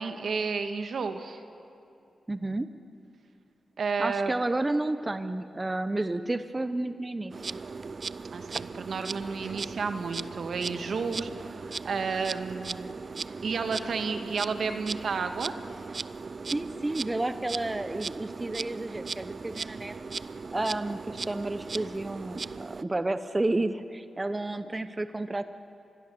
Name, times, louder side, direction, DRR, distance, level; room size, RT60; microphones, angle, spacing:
voice 1, 0.0-1.4 3.8-4.3 8.3-12.9 13.4-15.5, right 5 dB, 75° right, 7 dB, 1.6 m, -31 dB
voice 2, 2.3-2.7 4.0-7.6 16.5-19.9 20.5-25.4, right 2 dB, 25° right, 10 dB, 0.9 m, -31 dB
Insect, 7.3-22.8, right 4 dB, 50° right, 0.5 m, -38 dB
26.0 x 21.0 x 6.9 m, 2.6 s
cardioid pair, 70°, 0 cm